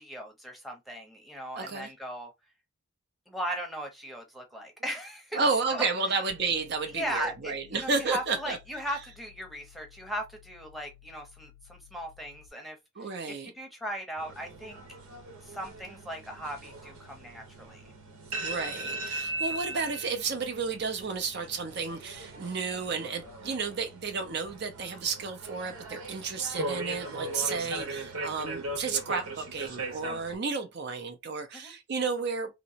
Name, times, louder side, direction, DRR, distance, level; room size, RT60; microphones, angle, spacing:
voice 1, 0.0-2.3 3.3-5.8 6.9-15.0 15.4-17.8 27.5-27.7 31.5-31.7, equal, ahead, 0.8 m, -38 dB
voice 2, 1.6-1.9 5.3-8.6 13.0-13.5 18.4-32.5, right 4 dB, 50° right, 0.5 m, -32 dB
sound 1, 6.3-12.5, left 12 dB, 60° left, 0.3 m, -56 dB
sound 2, 14.2-30.4, right 2 dB, 90° right, 1.1 m, -39 dB
2.9 x 2.9 x 2.8 m
head